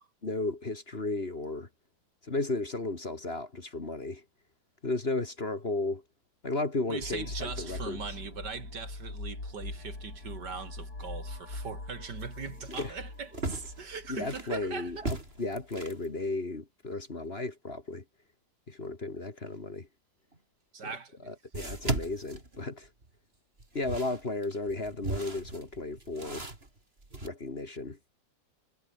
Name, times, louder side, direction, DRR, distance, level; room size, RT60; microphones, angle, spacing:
voice 1, 0.2-1.7 2.2-4.2 4.8-6.0 6.4-8.0 12.7-12.9 14.1-18.0 18.7-19.9 20.8-20.9 21.3-22.9 23.7-26.5 27.2-28.0, left 2 dB, 30° left, 2.4 m, -34 dB
voice 2, 6.9-15.1 20.7-21.3, right 5 dB, 60° right, 2.8 m, -40 dB
sound 1, 7.0-15.7, left 2 dB, 55° left, 6.5 m, -42 dB
sound 2, 11.0-11.1 11.5-11.6 12.2-14.6 15.0-16.1 20.3-20.4 21.5-23.1 23.6-27.3, right 2 dB, 30° right, 4.2 m, -38 dB
omnidirectional pair, 2.0 m